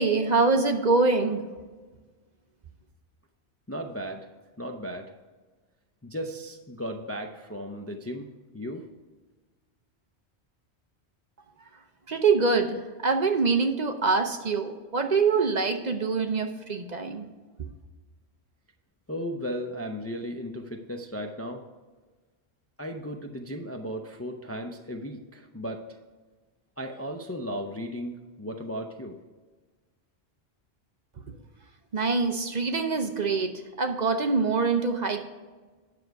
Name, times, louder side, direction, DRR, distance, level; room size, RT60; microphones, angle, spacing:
voice 1, 0.0-1.4 12.1-17.2 31.9-35.2, right 4 dB, 45° right, 5 dB, 0.8 m, -24 dB
voice 2, 3.7-4.3 4.6-5.1 6.0-8.9 19.1-21.6 22.8-25.8 26.8-29.2, equal, 20° left, 4 dB, 0.5 m, -35 dB
9.6 x 6.6 x 4.7 m, 1.3 s
omnidirectional pair, 1.1 m